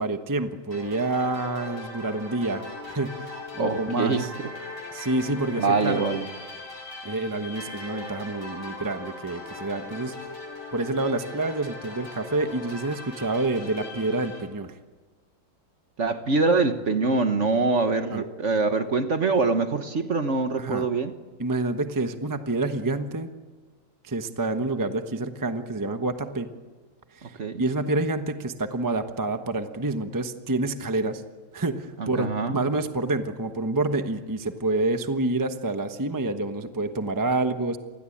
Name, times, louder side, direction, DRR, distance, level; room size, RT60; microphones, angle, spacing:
voice 1, 0.0-4.3 4.9-6.0 7.0-10.1 10.7-14.8 18.0-18.2 20.6-20.9 21.4-23.3 24.0-26.5 27.1-31.2 31.5-37.8, right 2 dB, 15° right, 7 dB, 0.7 m, -28 dB
sound 1, 0.7-14.4, left 2 dB, 35° left, 7.2 m, -39 dB
voice 2, 3.6-4.3 5.6-6.3 16.0-21.1 27.2-27.6 32.0-32.6, right 3 dB, 40° right, 8 dB, 1.3 m, -24 dB
27.5 x 20.5 x 8.7 m, 1.3 s
omnidirectional pair, 2.3 m